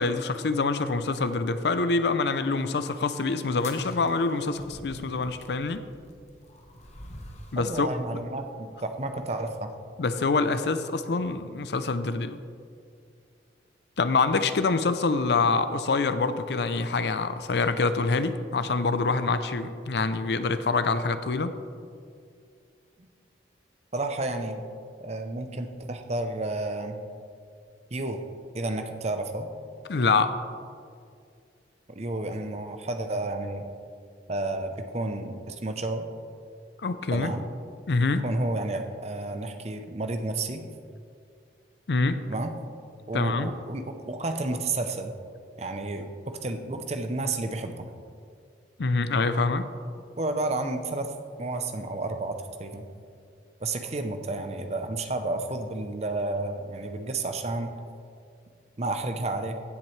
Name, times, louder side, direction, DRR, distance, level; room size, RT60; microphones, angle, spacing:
voice 1, 0.0-5.8 7.5-8.2 10.0-12.4 14.0-21.5 29.9-30.4 36.8-37.3 37.9-38.2 41.9-42.2 43.1-43.5 48.8-49.7, left 3 dB, 70° left, 11 dB, 0.5 m, -25 dB
sound 1, 3.5-7.7, left 1 dB, 40° left, 1.0 m, -46 dB
voice 2, 7.6-9.7 23.0-23.1 23.9-24.6 25.0-27.0 27.9-28.2 28.5-29.5 32.0-33.6 34.3-36.1 37.1-37.4 38.2-40.6 42.3-42.5 43.1-45.1 45.6-47.9 50.2-51.1 51.4-52.8 53.6-57.7 58.8-59.5, right 2 dB, 35° right, 6 dB, 0.7 m, -31 dB
15.5 x 7.3 x 3.2 m, 2.3 s
head